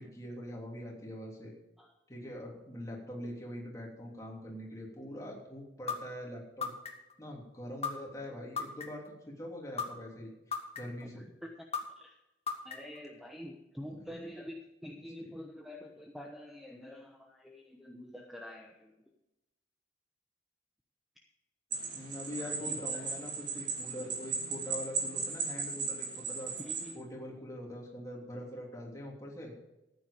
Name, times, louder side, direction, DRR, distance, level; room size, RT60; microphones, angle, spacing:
voice 1, 0.0-1.5 2.1-6.7 7.2-11.2 13.8-14.1 15.2-15.3 21.9-26.5 26.9-29.5, equal, 20° left, -2 dB, 3.2 m, -43 dB
sound 1, 5.9-6.0 6.6-7.1 7.8-7.9 8.6-9.1 9.8-9.9 10.5-11.0 11.7-11.8 12.5-13.0, left 6 dB, 35° left, 1.9 m, -34 dB
voice 2, 11.0-11.7 12.0-12.2 12.6-18.9 22.4-23.1 26.6-27.0, left 1 dB, ahead, 1 dB, 1.0 m, -47 dB
sound 2, 21.7-26.9, right 4 dB, 45° right, 3.0 m, -36 dB
14.5 x 9.4 x 5.2 m, 0.94 s
head